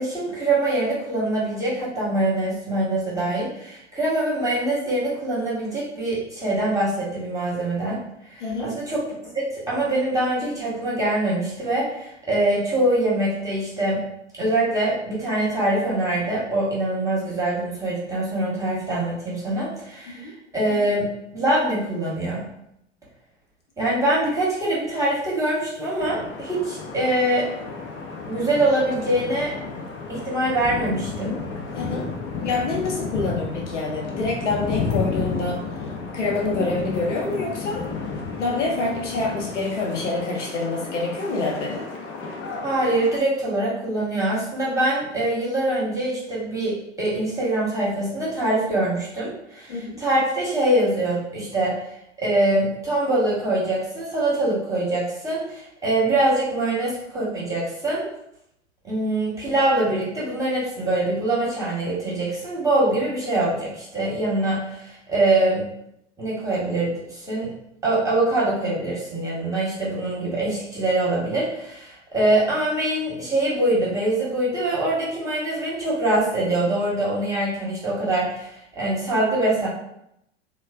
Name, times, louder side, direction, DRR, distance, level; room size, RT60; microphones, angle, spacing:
voice 1, 0.0-8.0 8.3-14.0 14.3-20.2 20.5-22.5 23.8-27.5 28.3-29.5 30.1-31.3 42.6-51.8 52.2-58.0 58.8-65.6 66.2-67.5 67.8-79.7, right 1 dB, 10° right, -7 dB, 1.1 m, -24 dB
voice 2, 8.4-8.7 20.1-20.3 31.7-32.0 32.4-35.6 36.1-37.8 38.4-41.8 49.7-50.0, left 3 dB, 75° left, -1 dB, 0.9 m, -26 dB
sound 1, 26.0-43.2, left 4 dB, 35° left, 0.6 m, -32 dB
3.1 x 2.2 x 2.3 m, 0.78 s
figure-of-eight pair, 85°, 36 cm